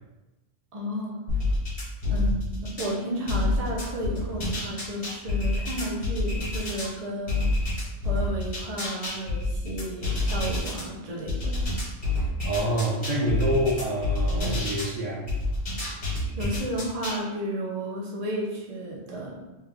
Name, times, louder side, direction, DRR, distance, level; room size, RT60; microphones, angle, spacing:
voice 1, 0.7-1.2 2.1-7.5 8.0-11.6 16.4-19.4, equal, 40° right, -3 dB, 0.6 m, -32 dB
sound 1, 1.3-2.9 3.3-6.9 7.3-10.8 11.3-14.9 15.3-17.2, left 2 dB, 30° left, 1.2 m, -28 dB
voice 2, 12.4-15.3, right 1 dB, 70° right, -8 dB, 1.9 m, -27 dB
3.2 x 3.2 x 3.5 m, 1.0 s
omnidirectional pair, 1.3 m